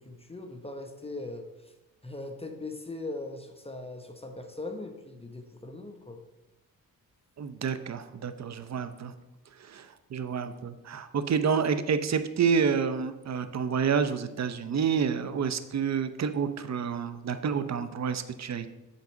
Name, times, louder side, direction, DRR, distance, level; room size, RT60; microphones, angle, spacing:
voice 1, 0.0-1.7 2.0-6.2, left 2 dB, 15° left, 5 dB, 1.0 m, -40 dB
voice 2, 7.4-9.1 9.6-18.7, right 6 dB, 45° right, 11 dB, 0.8 m, -29 dB
8.3 x 4.0 x 6.2 m, 1.0 s
supercardioid pair, 60°, 37 cm